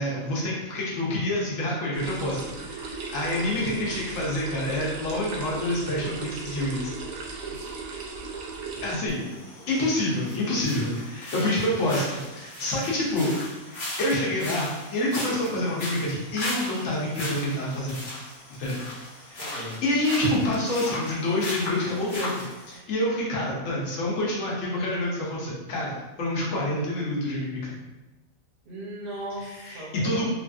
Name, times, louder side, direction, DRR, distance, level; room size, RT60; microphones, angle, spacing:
voice 1, 0.0-6.9 8.8-9.2 9.7-13.3 13.7-18.0 18.6-18.8 19.2-27.8 29.6-30.3, left 1 dB, 70° left, -4 dB, 1.2 m, -27 dB
sound 1, 1.9-9.0, right 4 dB, 75° right, 0.9 m, -37 dB
voice 2, 3.3-3.7 7.5-7.8 8.7-9.7 18.6-18.8 19.4-19.8 28.6-30.3, equal, 50° right, -4 dB, 0.8 m, -39 dB
sound 2, 9.1-22.8, left 1 dB, 45° left, 0.9 m, -37 dB
3.0 x 2.6 x 2.4 m, 1.1 s
omnidirectional pair, 1.4 m